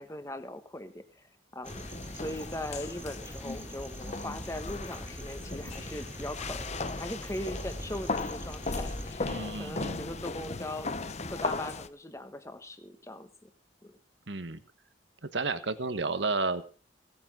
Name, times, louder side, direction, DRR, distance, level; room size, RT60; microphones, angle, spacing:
voice 1, 0.0-10.9 11.3-13.5 13.8-14.0, left 1 dB, 15° left, 9 dB, 1.3 m, -40 dB
sound 1, 1.6-9.1, right 1 dB, 15° right, 2.3 m, -43 dB
sound 2, 1.7-11.9, left 3 dB, 35° left, 0.8 m, -37 dB
voice 2, 9.3-10.0 14.3-14.6 15.3-16.6, right 3 dB, 75° right, 11 dB, 1.4 m, -31 dB
17.0 x 8.8 x 6.1 m, 0.39 s
head